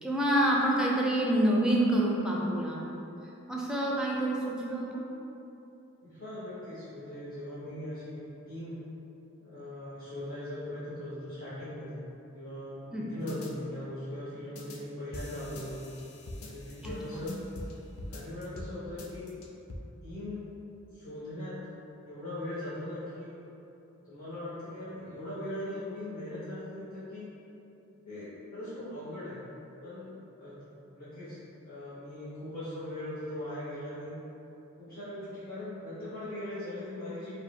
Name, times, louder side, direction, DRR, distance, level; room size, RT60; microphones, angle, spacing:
voice 1, 0.0-2.8 3.5-5.0 12.9-13.1 16.8-17.3, right 1 dB, 5° right, -4 dB, 0.4 m, -27 dB
voice 2, 6.0-8.8 9.4-12.0 12.3-15.8 16.4-17.6 18.1-19.3 20.0-20.4 20.9-21.6 22.0-23.4 24.0-27.3 28.0-29.4 29.8-30.1 30.4-30.6 30.9-34.2 34.8-37.3, left 1 dB, 45° left, -17 dB, 1.5 m, -40 dB
sound 1, 13.3-13.5 14.6-14.8 15.1-17.7 18.0-18.7 19.0-19.8, left 1 dB, 75° left, 0.5 m, -43 dB
4.6 x 2.1 x 3.5 m, 2.9 s
head